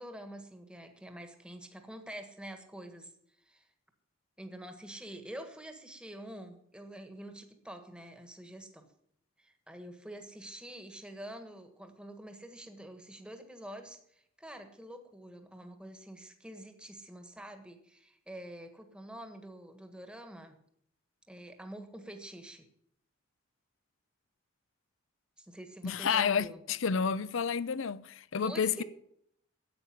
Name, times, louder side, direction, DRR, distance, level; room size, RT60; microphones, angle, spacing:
voice 1, 0.0-3.1 3.4-3.7 4.4-8.9 9.4-20.6 21.3-22.6 25.4-26.6 28.3-28.8, right 1 dB, 5° right, 1.4 m, -47 dB
voice 2, 25.8-28.8, left 6 dB, 75° left, 0.6 m, -30 dB
10.5 x 8.5 x 9.9 m
head